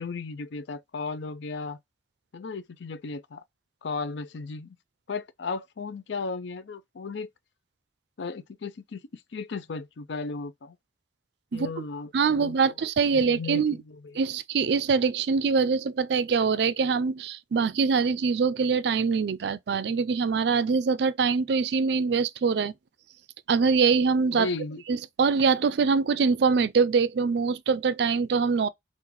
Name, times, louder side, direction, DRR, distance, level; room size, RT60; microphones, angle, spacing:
voice 1, 0.0-1.8 2.3-3.4 3.8-4.8 5.1-7.3 8.2-10.8 11.5-12.6 13.1-14.2 24.3-24.8, left 4 dB, 70° left, 0.5 m, -35 dB
voice 2, 12.1-13.8 14.1-22.7 23.5-24.5 24.9-28.7, right 5 dB, 65° right, 0.4 m, -24 dB
3.7 x 2.5 x 2.9 m
head